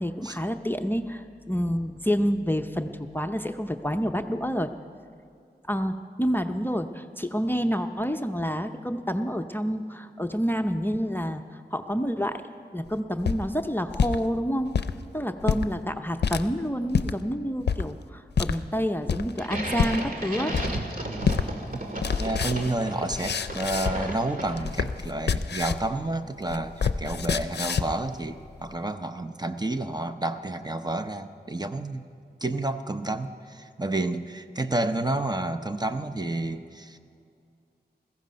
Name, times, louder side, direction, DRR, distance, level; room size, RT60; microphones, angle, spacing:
voice 1, 0.0-4.7 5.7-11.4 11.7-12.4 12.7-14.7 15.1-20.5, equal, 10° left, 6 dB, 0.6 m, -28 dB
sound 1, 13.0-14.2 14.6-14.9 15.4-15.7 16.2-16.4 16.9-17.1 17.7-17.8 18.4-18.6 19.1-19.4 19.8-20.0 20.5-20.9 21.3-21.5 21.8-24.1 24.4-25.9 26.2-28.0, left 6 dB, 75° left, 0.5 m, -27 dB
sound 2, 19.4-24.9, right 1 dB, 55° right, 2.0 m, -34 dB
voice 2, 22.2-32.0 32.4-37.0, right 2 dB, 25° right, 8 dB, 0.7 m, -30 dB
16.0 x 15.0 x 5.2 m, 2.4 s
cardioid pair, 50°, 18 cm